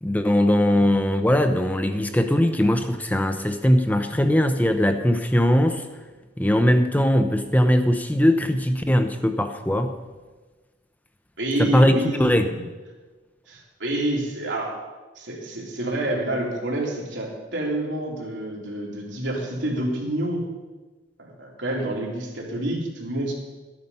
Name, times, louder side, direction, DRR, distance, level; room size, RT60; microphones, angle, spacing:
voice 1, 0.0-5.8 6.4-9.9 11.6-12.5, equal, 10° left, 7 dB, 0.6 m, -20 dB
voice 2, 11.4-12.6 13.5-14.8 15.1-20.5 21.2-23.3, right 1 dB, 80° right, -2 dB, 2.9 m, -28 dB
12.0 x 9.6 x 5.5 m, 1.3 s
head